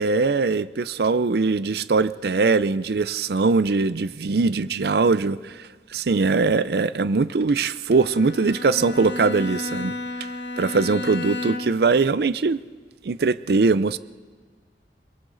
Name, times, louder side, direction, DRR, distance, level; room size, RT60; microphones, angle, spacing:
voice 1, 0.0-10.3 10.6-12.6 13.0-14.0, right 4 dB, 65° right, 0.5 m, -21 dB
Bowed string instrument, 7.9-12.0, left 2 dB, 90° left, 1.6 m, -32 dB
29.0 x 22.5 x 4.0 m
head